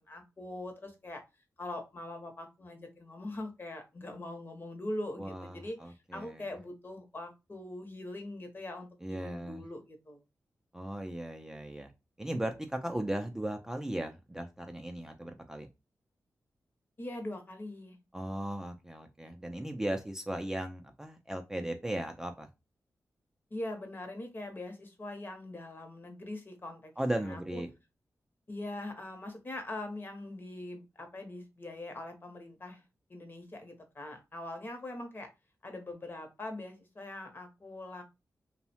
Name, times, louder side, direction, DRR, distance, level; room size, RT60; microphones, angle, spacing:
voice 1, 0.1-1.2 1.6-10.2 17.0-18.0 23.5-26.9 27.2-27.6 28.5-32.8 33.1-35.3 35.6-38.0, left 1 dB, 35° left, 5 dB, 0.7 m, -42 dB
voice 2, 5.2-6.5 9.0-9.6 10.7-11.9 12.2-15.7 18.1-22.5 27.0-27.7, right 1 dB, 10° right, 4 dB, 0.3 m, -37 dB
2.6 x 2.0 x 2.7 m, 0.25 s
cardioid pair, 80°, 6 cm